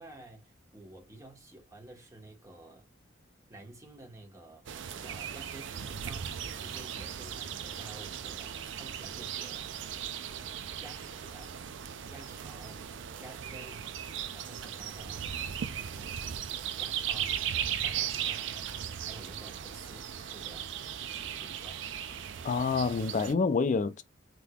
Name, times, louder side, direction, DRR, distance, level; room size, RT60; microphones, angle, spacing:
voice 1, 0.0-2.9 3.5-9.7 10.8-11.6 12.1-12.9 13.2-13.9 14.3-15.4 15.9-17.4 17.8-18.7 19.0-20.7 21.1-21.8, right 2 dB, 15° right, 1.1 m, -51 dB
sound 1, 4.7-23.3, right 9 dB, 65° right, 0.4 m, -37 dB
voice 2, 22.4-24.0, left 4 dB, 40° left, 0.4 m, -27 dB
3.5 x 2.9 x 2.3 m
head